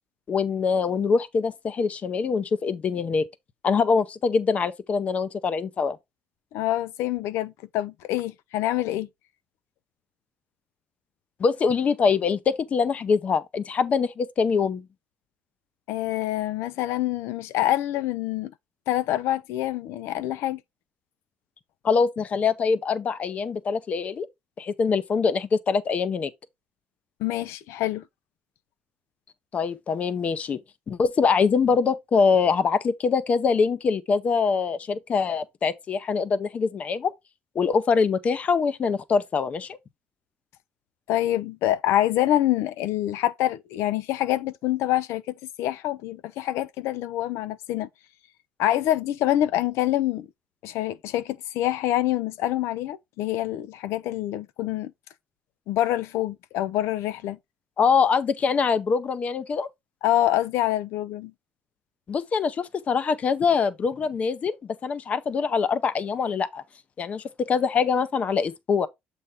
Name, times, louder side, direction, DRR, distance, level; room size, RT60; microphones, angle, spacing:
voice 1, 0.3-3.3 3.6-6.0 11.4-14.8 21.8-24.3 24.6-26.3 29.5-30.6 30.9-37.1 37.6-39.8 57.8-59.7 62.1-64.6 64.8-66.6 67.0-68.9, left 5 dB, 30° left, 0.6 m, -24 dB
voice 2, 6.5-9.1 15.9-18.5 18.9-20.6 27.2-28.0 41.1-47.9 48.6-50.3 50.6-54.9 55.7-57.4 60.0-61.3, left 14 dB, 75° left, 0.4 m, -26 dB
7.6 x 4.1 x 3.5 m
cardioid pair, 160°, 5 cm